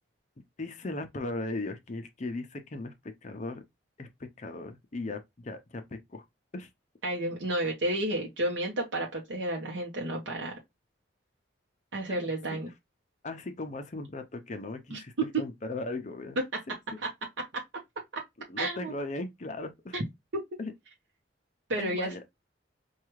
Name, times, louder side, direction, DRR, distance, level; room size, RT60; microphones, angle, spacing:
voice 1, 0.6-2.9 3.2-3.6 4.0-6.2 6.5-6.7 12.1-12.2 12.5-12.6 13.2-16.4 18.5-20.0 20.6-20.7 21.8-22.2, left 2 dB, 40° left, 0.5 m, -37 dB
voice 2, 7.0-10.5 11.9-12.7 14.9-15.0 18.6-18.9 19.9-20.0 21.7-22.1, right 1 dB, 80° right, 0.8 m, -31 dB
4.6 x 2.4 x 3.0 m
head